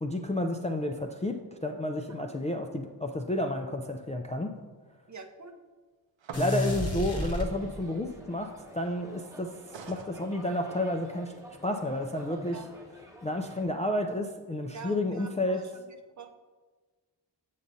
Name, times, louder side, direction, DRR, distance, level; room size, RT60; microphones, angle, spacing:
voice 1, 0.0-4.6 6.4-11.3 11.6-12.6 13.2-15.7, left 1 dB, 15° left, 3 dB, 0.3 m, -31 dB
voice 2, 5.1-5.6 12.5-12.7 14.7-15.9 16.2-16.4, right 4 dB, 40° right, 6 dB, 0.6 m, -46 dB
sound 1, 6.2-6.8 9.7-10.1, right 6 dB, 80° right, 0.7 m, -43 dB
sound 2, 6.3-8.1, equal, 35° left, 0.9 m, -31 dB
sound 3, 7.1-13.7, equal, 5° right, 1.0 m, -50 dB
7.3 x 6.9 x 2.6 m, 1.4 s
wide cardioid pair, 90°, 44 cm